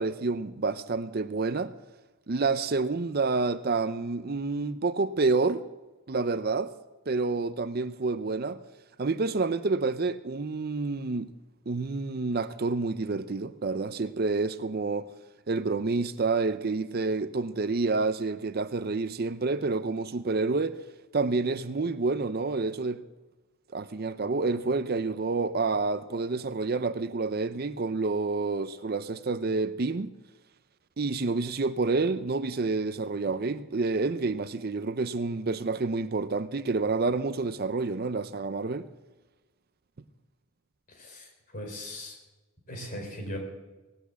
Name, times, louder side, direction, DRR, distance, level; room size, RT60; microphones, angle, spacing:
voice 1, 0.0-1.7 2.3-5.6 6.1-6.7 7.1-8.6 9.0-11.3 11.7-15.1 15.5-20.8 21.1-23.0 23.7-30.1 31.0-38.9, right 3 dB, 45° right, 0.5 m, -28 dB
voice 2, 40.9-42.2 42.7-43.4, left 1 dB, 40° left, 4.2 m, -39 dB
18.5 x 8.6 x 8.2 m
head